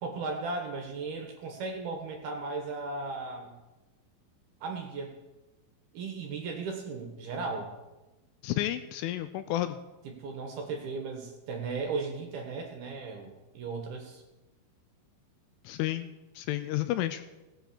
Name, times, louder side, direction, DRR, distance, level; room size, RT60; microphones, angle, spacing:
voice 1, 0.0-3.5 4.6-5.1 5.9-7.7 10.0-14.2, right 4 dB, 65° right, 3 dB, 2.8 m, -36 dB
voice 2, 8.4-9.8 15.6-16.1 16.4-17.2, left 14 dB, 80° left, 11 dB, 2.9 m, -31 dB
17.0 x 9.0 x 6.9 m, 1.1 s
omnidirectional pair, 5.9 m